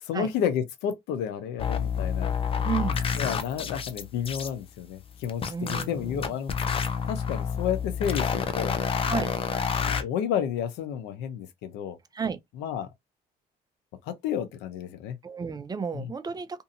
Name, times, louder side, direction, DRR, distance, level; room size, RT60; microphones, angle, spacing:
voice 1, 0.0-2.3 3.2-6.5 7.1-8.8 9.5-12.0 12.6-12.9 14.1-15.2 15.9-16.1, left 8 dB, 90° left, 0.6 m, -31 dB
sound 1, 1.6-4.5 5.0-10.0, left 6 dB, 35° left, 0.5 m, -28 dB
voice 2, 2.6-3.0 5.5-6.4 9.1-9.3 12.1-12.4 15.2-16.6, right 6 dB, 25° right, 0.4 m, -32 dB
2.7 x 2.6 x 2.6 m
cardioid pair, 110°, 17 cm